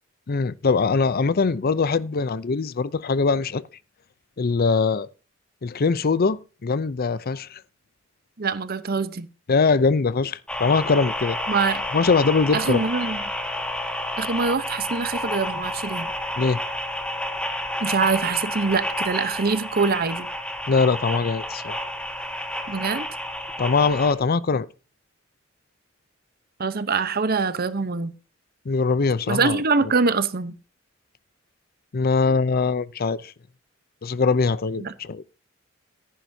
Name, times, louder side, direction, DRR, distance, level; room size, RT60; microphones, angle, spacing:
voice 1, 0.3-3.6 4.4-5.1 5.6-7.6 9.5-11.4 11.9-12.8 16.4-16.6 20.7-21.8 23.6-24.7 28.7-29.6 31.9-33.3 34.0-35.2, left 4 dB, 50° left, 0.5 m, -22 dB
voice 2, 8.4-9.3 11.5-11.8 12.5-13.2 14.2-16.1 17.8-20.3 22.7-23.1 26.6-28.1 29.3-30.5 34.8-34.9, right 4 dB, 50° right, 0.9 m, -24 dB
sound 1, 10.5-24.1, left 1 dB, 5° left, 1.8 m, -30 dB
15.0 x 10.5 x 2.7 m
head